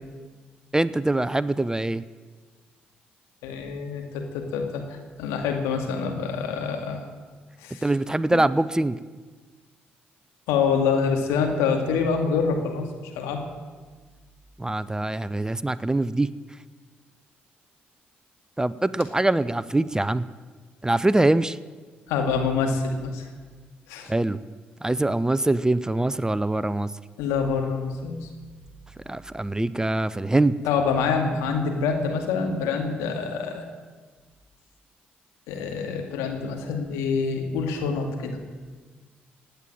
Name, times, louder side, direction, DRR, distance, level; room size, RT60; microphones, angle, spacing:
voice 1, 0.7-2.0 7.8-9.0 14.6-16.3 18.6-20.2 20.8-21.6 24.1-24.4 24.8-26.9 29.1-30.5, right 2 dB, 15° right, 17 dB, 0.7 m, -23 dB
voice 2, 3.4-7.0 7.6-7.8 8.3-8.4 10.5-12.9 13.2-13.4 22.1-23.3 23.9-24.1 27.2-28.3 30.6-33.6 35.5-38.4, left 5 dB, 75° left, 3 dB, 2.3 m, -26 dB
16.5 x 9.2 x 8.8 m, 1.4 s
hypercardioid pair, 45°, 5 cm